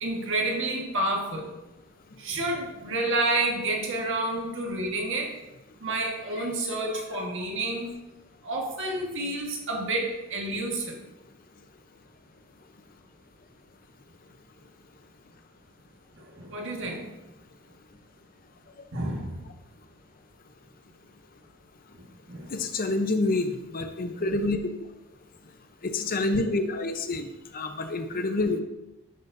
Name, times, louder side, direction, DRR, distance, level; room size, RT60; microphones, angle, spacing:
voice 1, 0.0-1.6 2.2-5.4 5.8-8.0 8.4-11.0 16.2-17.1 18.9-19.5 22.0-22.6, right 2 dB, 60° right, 1 dB, 1.5 m, -30 dB
voice 2, 22.5-24.6 25.8-27.3 27.5-28.6, left 2 dB, 40° left, 7 dB, 0.7 m, -27 dB
11.0 x 6.8 x 2.6 m, 1.0 s
head